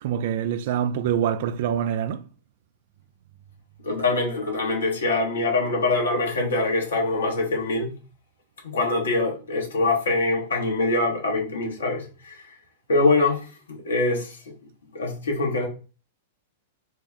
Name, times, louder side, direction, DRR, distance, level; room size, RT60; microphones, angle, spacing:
voice 1, 0.0-2.2, right 9 dB, 60° right, 0.3 m, -25 dB
voice 2, 3.8-8.0 8.6-12.5 12.9-14.4 14.9-15.7, left 2 dB, 80° left, 0.9 m, -24 dB
2.6 x 2.2 x 3.4 m
hypercardioid pair, 105°, 0 cm